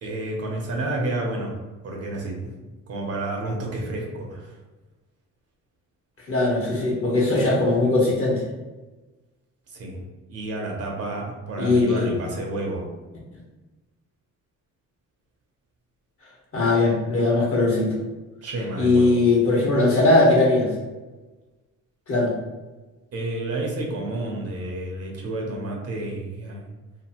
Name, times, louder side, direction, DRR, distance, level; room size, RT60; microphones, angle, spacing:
voice 1, 0.0-1.5 1.8-2.5 2.9-4.6 9.7-10.0 10.3-12.9 18.4-19.2 23.1-26.6, right 2 dB, 55° right, -1 dB, 0.9 m, -30 dB
voice 2, 6.3-8.4 11.6-12.2 16.5-17.9 18.8-20.7 22.1-22.3, left 2 dB, 50° left, -4 dB, 1.2 m, -20 dB
2.9 x 2.5 x 2.9 m, 1.2 s
cardioid pair, 90°, 30 cm